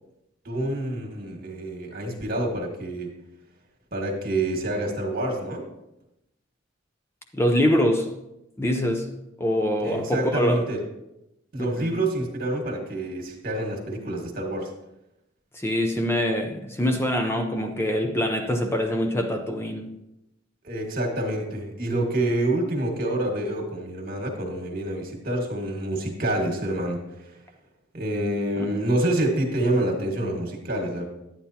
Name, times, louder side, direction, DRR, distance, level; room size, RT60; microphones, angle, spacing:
voice 1, 0.4-3.1 3.9-5.6 9.8-10.8 11.5-14.7 20.6-27.4 27.9-31.0, right 1 dB, 50° right, 1.7 m, -27 dB
voice 2, 7.3-8.1 8.6-9.1 9.4-10.6 11.6-12.0 15.5-19.9 28.6-28.7, equal, 15° left, 0.6 m, -24 dB
10.0 x 9.1 x 2.8 m
head